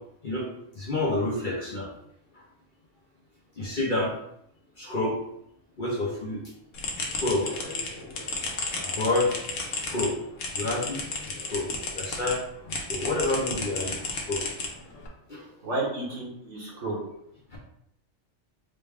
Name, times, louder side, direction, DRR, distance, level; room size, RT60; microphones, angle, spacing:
voice 1, 0.7-1.9 3.6-4.1 4.8-5.1 5.8-6.4 7.0-7.5 9.0-9.3 9.9-10.1 10.5-11.0 11.3-11.7 11.9-12.4 12.7-14.4 15.3-15.4 17.5-17.6, left 2 dB, 45° left, -4 dB, 0.7 m, -28 dB
sound 1, 6.7-12.4 12.7-15.1, left 3 dB, 75° left, 1.1 m, -33 dB
voice 2, 15.6-17.0, right 2 dB, 65° right, -4 dB, 1.4 m, -31 dB
3.9 x 2.2 x 3.4 m, 0.75 s
omnidirectional pair, 1.4 m